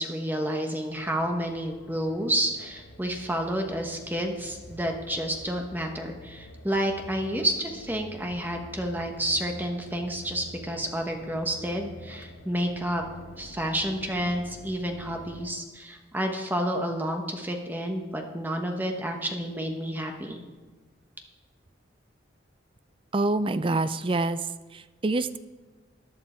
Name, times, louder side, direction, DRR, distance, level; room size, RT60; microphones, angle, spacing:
voice 1, 0.0-13.0 13.4-20.4, right 1 dB, 10° right, 3 dB, 1.1 m, -30 dB
sound 1, 0.9-15.5, left 1 dB, 85° left, 1.2 m, -47 dB
voice 2, 23.1-24.4 24.7-25.4, right 2 dB, 25° right, 13 dB, 0.4 m, -26 dB
14.0 x 10.5 x 4.4 m, 1.3 s
head